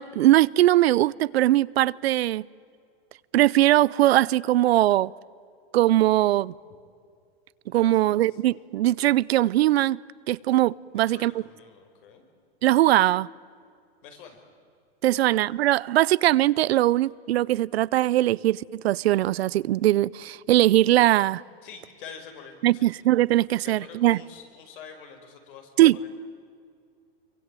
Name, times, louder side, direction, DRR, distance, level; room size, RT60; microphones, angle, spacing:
voice 1, 0.0-2.4 3.3-5.1 5.7-6.5 7.7-10.0 10.3-11.3 12.6-13.3 15.0-21.4 22.6-24.2 25.8-26.0, right 15 dB, 80° right, 22 dB, 0.7 m, -21 dB
voice 2, 7.7-8.4 11.1-12.2 14.0-14.4 15.1-15.4 21.6-22.9 23.6-26.1, left 6 dB, 55° left, 5 dB, 5.5 m, -46 dB
26.5 x 23.5 x 9.0 m, 2.3 s
supercardioid pair, 160°, 31 cm